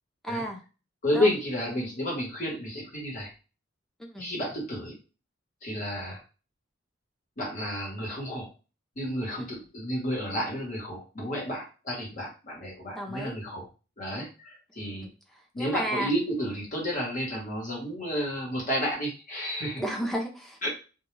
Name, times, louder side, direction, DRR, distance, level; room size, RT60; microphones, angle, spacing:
voice 1, 0.2-0.6 1.1-1.3 4.0-4.3 12.9-13.4 14.8-16.1 19.8-20.7, right 1 dB, ahead, 1 dB, 0.5 m, -33 dB
voice 2, 1.0-3.3 4.2-4.9 5.6-6.2 7.4-8.5 9.0-13.7 14.0-15.1 15.5-19.8 20.6-20.7, equal, 45° left, -2 dB, 1.1 m, -31 dB
2.3 x 2.2 x 3.1 m, 0.33 s
head